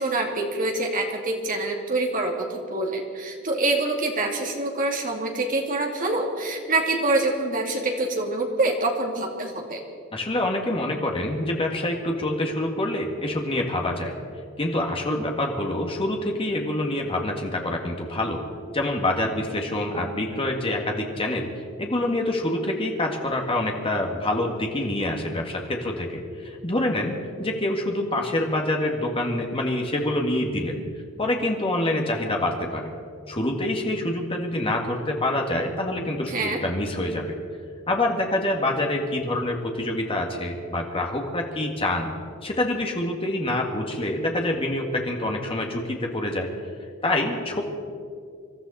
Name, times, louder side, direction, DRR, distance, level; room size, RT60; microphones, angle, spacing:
voice 1, 0.0-9.8 36.3-36.6, right 2 dB, 40° right, 1 dB, 2.4 m, -26 dB
voice 2, 10.1-14.1 14.6-18.4 18.7-21.5 21.8-27.1 27.4-30.8 31.2-32.9 33.3-37.2 37.9-42.1 42.4-46.5 47.0-47.6, left 1 dB, 25° left, 1 dB, 1.9 m, -26 dB
26.0 x 13.0 x 4.3 m, 2.2 s
head